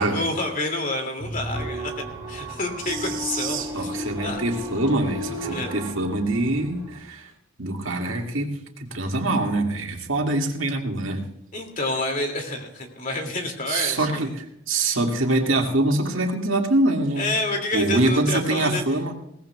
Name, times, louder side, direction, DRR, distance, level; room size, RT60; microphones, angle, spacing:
voice 1, 0.1-1.9 2.3-3.9 4.2-4.4 5.5-5.7 11.5-14.3 14.8-15.0 17.2-18.8, left 2 dB, 40° left, 3 dB, 2.5 m, -28 dB
sound 1, 1.2-7.0, equal, 20° right, 6.4 m, -34 dB
voice 2, 2.8-7.3 7.6-11.2 13.7-17.3 17.7-19.1, right 2 dB, 90° right, 1 dB, 2.1 m, -24 dB
21.5 x 18.0 x 2.3 m, 0.75 s
head